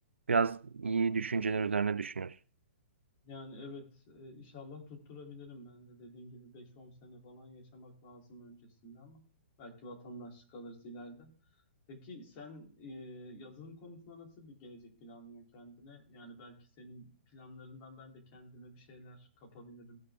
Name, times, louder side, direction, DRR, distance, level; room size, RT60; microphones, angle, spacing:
voice 1, 0.3-2.3, right 5 dB, 80° right, 0.4 m, -30 dB
voice 2, 3.2-9.2 9.6-20.0, left 1 dB, 35° left, 3.4 m, -50 dB
17.0 x 6.6 x 3.7 m
figure-of-eight pair, 120°, 6 cm